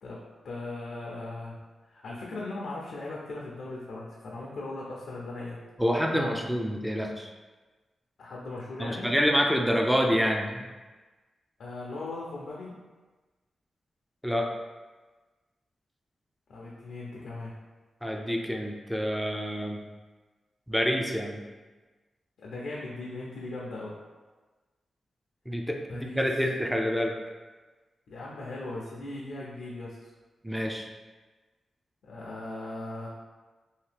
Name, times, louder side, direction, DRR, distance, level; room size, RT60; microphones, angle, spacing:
voice 1, 0.0-1.6 1.9-6.4 8.2-9.1 11.6-12.7 16.5-17.5 22.4-23.9 25.9-26.3 28.1-30.1 32.0-33.1, left 2 dB, 80° left, -5 dB, 0.5 m, -38 dB
voice 2, 5.8-7.3 8.8-10.6 14.2-14.6 18.0-19.8 20.7-21.4 25.5-27.1 30.4-30.9, equal, ahead, 1 dB, 0.4 m, -27 dB
2.8 x 2.8 x 3.3 m, 1.3 s
cardioid pair, 95°, 0 cm